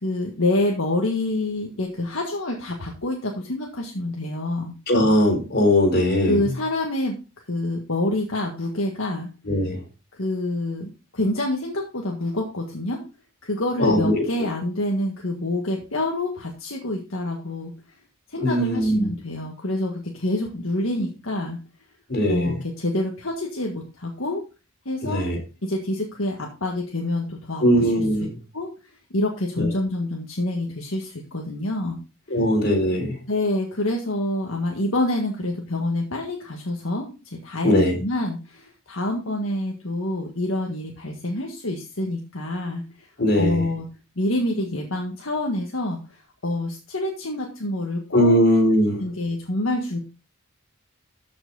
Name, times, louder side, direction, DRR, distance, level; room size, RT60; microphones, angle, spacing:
voice 1, 0.0-4.7 6.2-7.2 7.5-9.3 10.1-13.0 13.4-17.7 18.3-21.6 22.3-24.4 24.9-25.3 25.6-27.9 28.5-32.0 33.3-43.1 43.4-43.9 44.2-46.0 46.4-48.4 49.0-50.0, left 1 dB, 70° left, 0 dB, 1.7 m, -27 dB
voice 2, 4.9-6.5 9.5-9.8 13.8-14.2 18.4-19.1 22.1-22.6 25.0-25.4 27.6-28.3 29.6-29.7 32.3-33.2 37.6-38.0 43.2-43.6 48.1-49.0, equal, 50° left, 2 dB, 3.8 m, -20 dB
13.5 x 6.1 x 4.0 m, 0.31 s
head